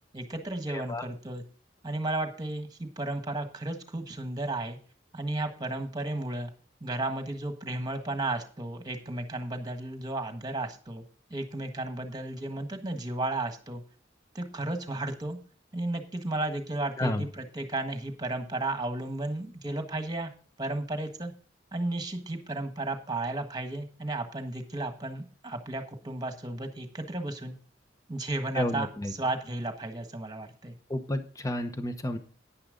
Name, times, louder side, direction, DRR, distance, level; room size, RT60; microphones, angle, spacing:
voice 1, 0.1-1.4 1.8-4.8 5.1-6.5 6.8-11.0 11.3-13.8 14.3-15.4 15.7-20.3 20.6-21.3 21.7-27.6 28.1-28.9 29.2-30.8, right 2 dB, 20° right, 6 dB, 1.4 m, -33 dB
voice 2, 0.7-1.0 17.0-17.3 28.5-29.1 30.9-32.2, left 1 dB, 20° left, 9 dB, 1.0 m, -31 dB
10.0 x 9.9 x 3.9 m, 0.41 s
head